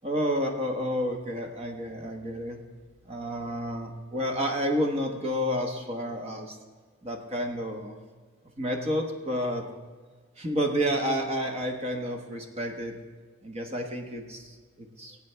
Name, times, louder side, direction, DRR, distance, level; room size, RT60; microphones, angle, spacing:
voice 1, 0.0-2.6 3.0-6.6 7.0-7.9 8.6-9.6 10.4-12.9 13.4-15.2, equal, 30° right, 3 dB, 1.1 m, -30 dB
18.5 x 8.6 x 3.3 m, 1.5 s
head